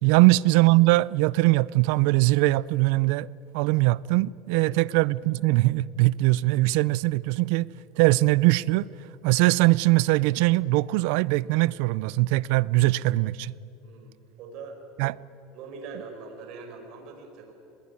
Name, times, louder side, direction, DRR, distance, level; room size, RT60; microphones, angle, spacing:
voice 1, 0.0-3.3 3.5-7.7 8.0-8.9 9.2-13.5 15.0-15.1, right 20 dB, 70° right, 0.5 m, -21 dB
voice 2, 13.8-14.8 15.5-17.5, right 4 dB, 50° right, 5.1 m, -42 dB
21.5 x 21.0 x 9.6 m
supercardioid pair, 150°, 0 cm